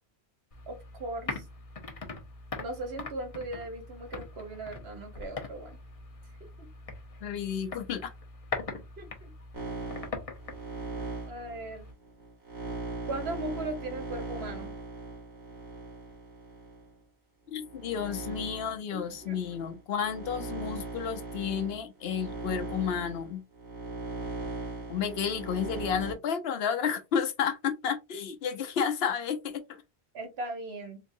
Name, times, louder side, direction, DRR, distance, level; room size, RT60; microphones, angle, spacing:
sound 1, 0.5-11.9, left 3 dB, 35° left, 0.7 m, -42 dB
voice 1, 0.7-1.4 2.6-5.8 9.0-9.3 11.3-11.9 13.1-14.7 18.9-19.4 30.1-31.0, right 2 dB, 70° right, 1.3 m, -38 dB
voice 2, 7.2-8.1 17.5-23.4 24.9-29.8, left 7 dB, 70° left, 0.8 m, -31 dB
sound 2, 9.5-16.9 17.5-26.1, right 2 dB, 85° right, 1.8 m, -39 dB
3.9 x 2.6 x 2.6 m
omnidirectional pair, 1.1 m